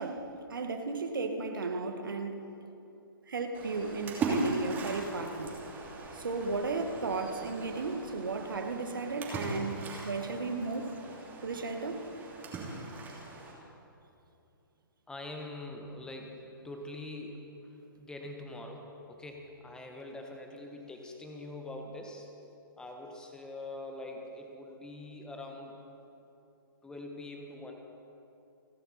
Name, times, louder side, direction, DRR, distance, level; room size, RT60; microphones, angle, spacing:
voice 1, 0.0-2.4 3.3-5.6 6.1-10.9 11.4-12.1, right 3 dB, 65° right, 5 dB, 1.7 m, -35 dB
Splash splatter, 3.5-13.5, right 3 dB, 15° right, 2.9 m, -39 dB
voice 2, 15.1-16.4 16.6-22.3 22.8-25.8 26.8-27.7, left 2 dB, 5° left, 2 dB, 1.3 m, -44 dB
29.5 x 11.0 x 4.3 m, 2.8 s
figure-of-eight pair, 125°, 12 cm